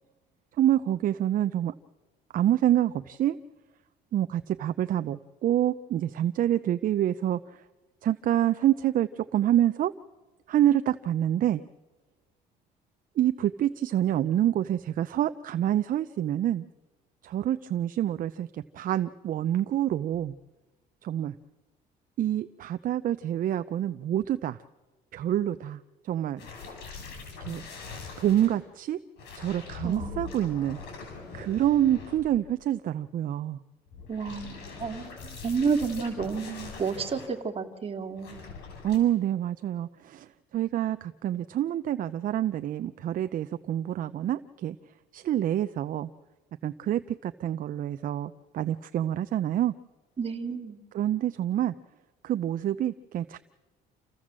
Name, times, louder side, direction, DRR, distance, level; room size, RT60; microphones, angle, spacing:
voice 1, 0.6-1.7 2.3-3.4 4.1-7.4 8.0-9.9 10.5-11.6 13.2-16.6 17.2-20.3 21.0-21.3 22.2-24.6 25.1-26.4 27.4-27.6 28.2-29.0 29.4-30.8 31.3-33.6 38.8-40.3 40.5-44.8 45.1-46.1 46.6-49.7 50.9-51.7 52.2-53.4, right 11 dB, 55° right, 11 dB, 0.7 m, -27 dB
sound 1, 26.4-28.6 29.2-32.6 33.9-37.3 38.2-39.0, left 4 dB, 80° left, 7.0 m, -42 dB
voice 2, 29.8-30.4 34.1-38.4 50.2-50.8, right 5 dB, 35° right, 5 dB, 2.3 m, -31 dB
28.5 x 15.5 x 7.6 m, 1.2 s
cardioid pair, 110°, 17 cm